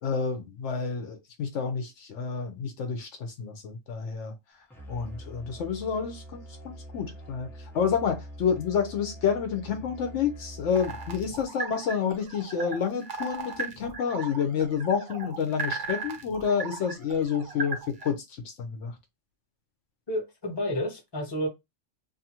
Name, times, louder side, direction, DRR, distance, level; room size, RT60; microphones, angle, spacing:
voice 1, 0.0-4.3 4.9-18.9, left 7 dB, 75° left, 0.9 m, -29 dB
Musical instrument, 4.7-11.5, right 1 dB, 5° left, 0.4 m, -44 dB
sound 1, 10.7-18.1, right 4 dB, 50° right, 0.7 m, -37 dB
voice 2, 20.1-21.5, equal, 25° left, 0.8 m, -30 dB
2.6 x 2.5 x 2.8 m
omnidirectional pair, 1.3 m